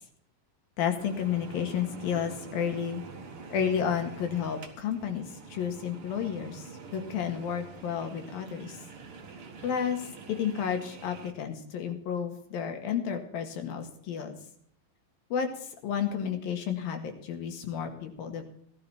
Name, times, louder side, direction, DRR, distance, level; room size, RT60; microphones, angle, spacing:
voice 1, 0.8-3.0 3.5-6.6 6.9-8.7 9.6-10.0 10.3-14.4 15.3-15.5 15.8-18.4, left 8 dB, 85° left, 5 dB, 3.7 m, -31 dB
sound 1, 1.0-11.3, right 4 dB, 45° right, 2.3 m, -46 dB
18.0 x 12.0 x 4.4 m, 0.66 s
omnidirectional pair, 4.0 m